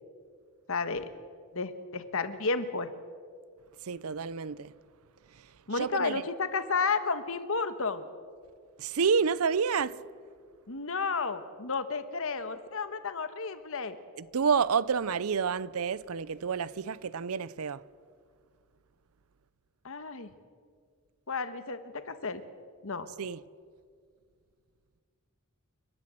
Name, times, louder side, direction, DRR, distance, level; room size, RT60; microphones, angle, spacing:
voice 1, 0.7-1.1 1.5-2.9 5.7-8.0 10.7-14.0 19.8-20.3 21.3-22.4 22.8-23.1, left 4 dB, 65° left, 1.3 m, -32 dB
voice 2, 3.8-4.7 5.3-6.2 8.8-10.0 14.2-17.8 23.2-23.4, right 6 dB, 75° right, 0.6 m, -29 dB
29.5 x 12.0 x 7.7 m
head